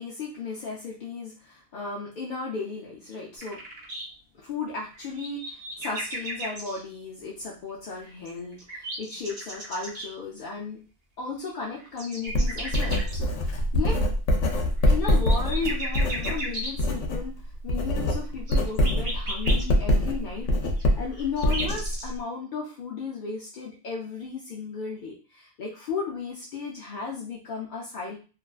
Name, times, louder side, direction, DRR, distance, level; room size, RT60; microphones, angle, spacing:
voice 1, 0.0-3.6 4.3-10.8 11.2-14.0 14.8-17.3 17.6-20.7 20.9-28.2, left 4 dB, 60° left, -4 dB, 0.5 m, -35 dB
sound 1, 3.4-4.0 4.8-6.8 8.0-10.1 11.5-13.2 14.8-16.7 18.4-19.6 20.8-22.1, right 1 dB, 40° right, 0.7 m, -35 dB
Writing, 12.3-17.3 17.5-22.2, left 1 dB, 85° left, 0.9 m, -24 dB
2.5 x 2.3 x 2.3 m, 0.36 s
omnidirectional pair, 1.3 m